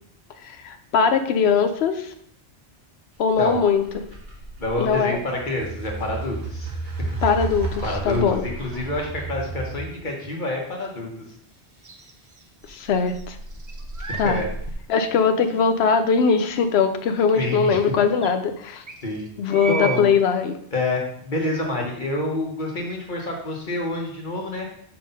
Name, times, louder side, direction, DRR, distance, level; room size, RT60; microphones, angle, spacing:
voice 1, 0.4-2.1 3.2-3.8 4.8-5.2 7.2-8.4 12.7-13.4 14.2-14.4 14.9-18.8 19.4-20.6, left 6 dB, 75° left, 8 dB, 0.9 m, -21 dB
sound 1, 3.3-10.0 12.6-14.7, right 3 dB, 60° right, 1.2 m, -33 dB
voice 2, 4.6-7.1 7.8-11.1 14.1-14.4 17.3-17.8 19.0-19.3 19.7-20.1 20.7-24.7, left 2 dB, 45° left, -1 dB, 1.4 m, -27 dB
sound 2, 11.8-12.8 13.1-14.4 14.9-15.0 17.2-17.3 17.5-17.6 18.2-18.3 18.9-20.1, right 5 dB, 30° right, 0.3 m, -35 dB
5.7 x 3.3 x 5.4 m, 0.66 s
omnidirectional pair, 1.1 m